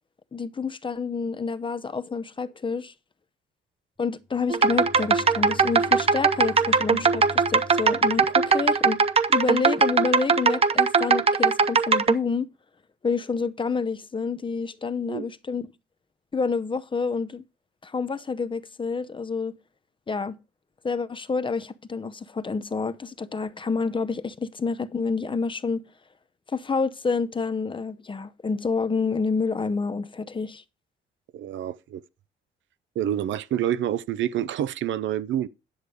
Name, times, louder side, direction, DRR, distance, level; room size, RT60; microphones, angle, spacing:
voice 1, 0.3-2.9 4.0-9.0 9.3-12.5 13.0-15.7 16.3-17.4 17.8-19.5 20.1-20.4 20.8-25.8 26.5-30.6, left 4 dB, 25° left, 0.7 m, -28 dB
Bowed string instrument, 4.2-9.5, left 2 dB, 5° right, 1.3 m, -44 dB
sound 1, 4.5-12.1, right 5 dB, 30° right, 0.7 m, -20 dB
voice 2, 31.3-32.0 33.0-35.5, right 11 dB, 70° right, 0.6 m, -27 dB
10.5 x 6.7 x 4.8 m
cardioid pair, 90°, 20 cm